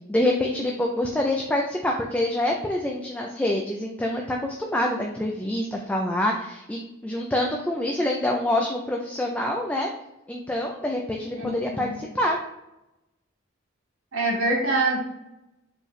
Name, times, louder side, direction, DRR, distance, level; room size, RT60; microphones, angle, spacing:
voice 1, 0.1-9.9 10.3-12.4, left 1 dB, 5° left, 0 dB, 0.3 m, -26 dB
voice 2, 11.4-12.0 14.1-15.0, right 2 dB, 85° right, -2 dB, 1.3 m, -25 dB
4.4 x 3.3 x 3.1 m, 0.90 s
head